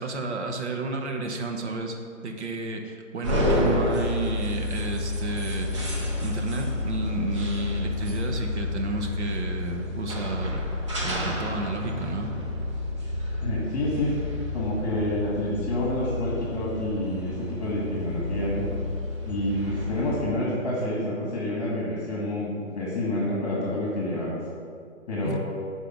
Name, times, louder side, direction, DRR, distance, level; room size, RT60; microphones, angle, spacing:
voice 1, 0.0-1.9 2.2-10.6 11.0-12.3 25.2-25.4, right 3 dB, 60° right, 3 dB, 1.3 m, -32 dB
sound 1, 3.2-20.1, left 2 dB, 25° right, 0.7 m, -30 dB
voice 2, 13.4-14.1 14.5-18.7 19.2-24.4 25.1-25.4, left 1 dB, 35° left, -5 dB, 2.0 m, -28 dB
10.5 x 4.9 x 6.0 m, 2.2 s
hypercardioid pair, 170°, 38 cm